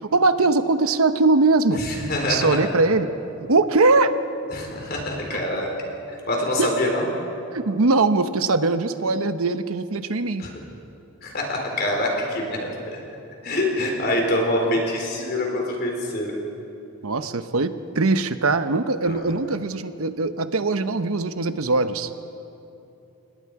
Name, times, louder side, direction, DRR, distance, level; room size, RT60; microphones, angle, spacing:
voice 1, 0.0-1.8 2.2-3.1 3.4-4.1 5.3-5.4 6.6-6.7 7.5-10.5 14.7-14.8 17.0-22.1, right 3 dB, 85° right, 10 dB, 0.9 m, -21 dB
voice 2, 1.8-2.6 4.5-5.7 6.3-7.1 10.4-10.5 11.2-12.6 12.9-13.0 13.4-16.3 19.1-19.2, left 1 dB, 45° left, 1 dB, 4.0 m, -25 dB
28.5 x 19.5 x 4.8 m, 2.8 s
head